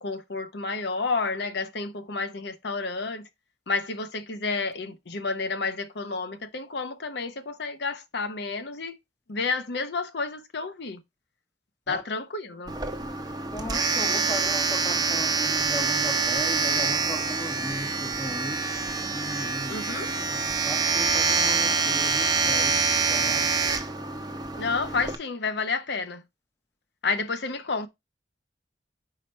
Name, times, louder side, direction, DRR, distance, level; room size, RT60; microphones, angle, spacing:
voice 1, 0.0-3.2 3.7-8.9 9.3-11.0 11.9-12.7 19.7-20.1 24.6-26.2 27.0-27.9, left 4 dB, 60° left, 0.8 m, -30 dB
Domestic sounds home sounds, 12.7-25.1, right 4 dB, 20° right, 0.8 m, -26 dB
voice 2, 13.4-18.6 19.1-19.8 20.3-22.8 23.1-23.5, equal, 15° left, 0.8 m, -37 dB
4.9 x 4.5 x 5.2 m
head